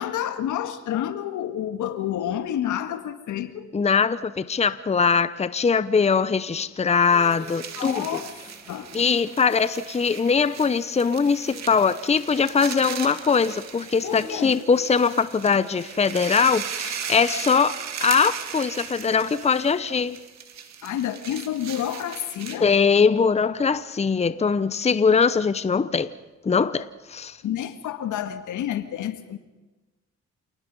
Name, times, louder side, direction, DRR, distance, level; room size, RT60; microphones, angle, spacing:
voice 1, 0.0-3.7 7.8-8.3 8.7-8.9 14.0-14.5 20.8-22.7 27.4-29.4, left 11 dB, 80° left, 1.8 m, -29 dB
voice 2, 3.7-8.2 8.9-20.2 22.6-26.1 26.4-27.4, left 5 dB, 20° left, 0.8 m, -21 dB
sound 1, 6.6-20.0, equal, 10° right, 3.7 m, -50 dB
sound 2, 7.0-22.8, right 8 dB, 60° right, 2.2 m, -37 dB
28.0 x 18.5 x 5.5 m
cardioid pair, 90°, 30 cm